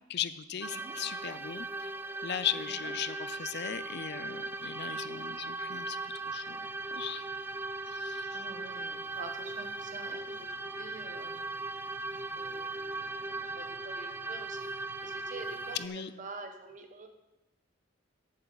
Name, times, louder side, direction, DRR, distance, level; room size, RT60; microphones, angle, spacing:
voice 1, 0.1-1.9 2.2-7.3 7.9-8.5 15.7-16.1, left 9 dB, 60° left, 14 dB, 0.5 m, -38 dB
sound 1, 0.6-15.9, right 2 dB, 10° right, 0.3 m, -38 dB
voice 2, 8.3-11.6 12.4-14.7 15.0-17.1, right 3 dB, 40° right, 5 dB, 1.0 m, -47 dB
14.0 x 7.6 x 4.0 m, 0.99 s
head